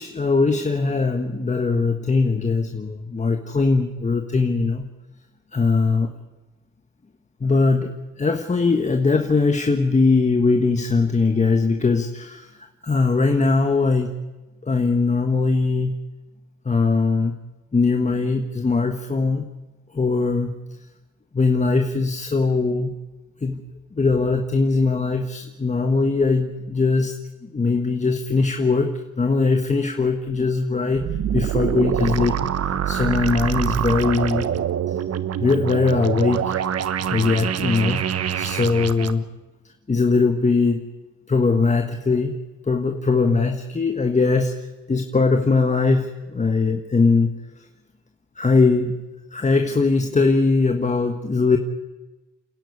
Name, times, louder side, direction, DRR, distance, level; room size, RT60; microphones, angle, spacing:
voice 1, 0.0-4.9 5.5-6.1 7.4-12.5 12.8-14.1 14.6-15.9 16.6-17.3 17.7-19.4 19.9-20.5 21.3-22.9 23.4-23.6 23.9-27.1 27.4-32.4 32.9-34.5 35.4-36.6 37.1-38.0 38.3-39.2 39.9-40.9 41.3-42.4 42.7-44.6 44.9-47.4 48.4-48.9 49.3-51.6, left 4 dB, 25° left, 5 dB, 1.5 m, -20 dB
sound 1, 30.9-39.1, right 9 dB, 55° right, 1.2 m, -25 dB
29.5 x 10.5 x 9.6 m, 1.1 s
cardioid pair, 90°, 30 cm